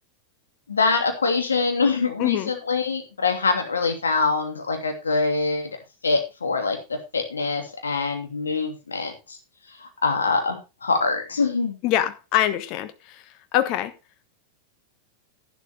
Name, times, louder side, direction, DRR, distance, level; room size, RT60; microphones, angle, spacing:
voice 1, 0.7-5.7 6.0-9.4 9.8-11.7, left 4 dB, 75° left, 2.8 m, -24 dB
voice 2, 2.2-2.5 11.8-12.9 13.5-13.9, left 12 dB, 40° left, 1.2 m, -23 dB
11.5 x 10.5 x 3.5 m
figure-of-eight pair, 90°, 0 cm